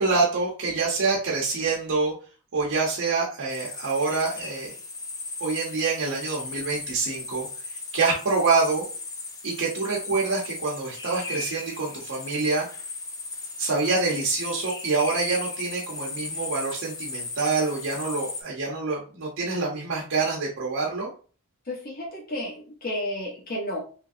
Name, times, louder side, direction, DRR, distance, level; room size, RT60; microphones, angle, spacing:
voice 1, 0.0-2.1 2.5-4.8 5.4-7.5 7.9-8.8 9.4-12.7 13.6-21.1, right 4 dB, 60° right, -4 dB, 0.7 m, -26 dB
sound 1, 3.5-18.4, left 3 dB, 15° left, 0.3 m, -37 dB
voice 2, 21.7-23.8, left 1 dB, 40° left, -3 dB, 0.9 m, -32 dB
3.0 x 2.5 x 2.4 m, 0.39 s
head